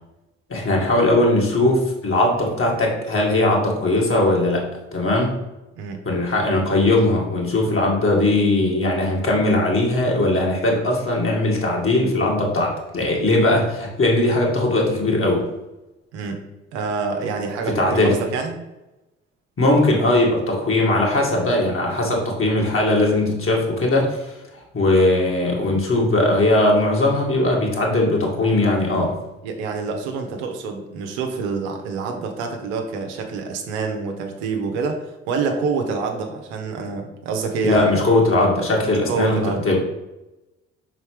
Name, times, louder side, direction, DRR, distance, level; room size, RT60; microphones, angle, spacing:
voice 1, 0.5-5.4 6.0-15.4 17.7-18.2 19.6-24.3 24.7-29.2 37.6-39.8, left 2 dB, 40° left, -1 dB, 2.2 m, -19 dB
voice 2, 16.7-18.5 29.4-38.0 39.1-39.6, right 4 dB, 70° right, 4 dB, 0.9 m, -26 dB
5.6 x 4.1 x 4.7 m, 0.98 s
figure-of-eight pair, 40°, 34 cm